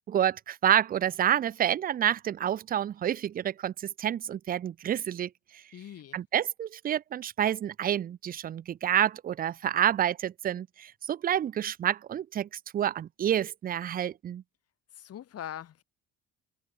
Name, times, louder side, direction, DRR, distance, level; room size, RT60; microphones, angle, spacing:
voice 1, 0.1-5.6 6.1-14.4, right 10 dB, 25° right, 0.3 m, -28 dB
voice 2, 5.7-6.2 14.9-15.8, left 10 dB, 45° left, 1.1 m, -42 dB
cardioid pair, 100°, 35 cm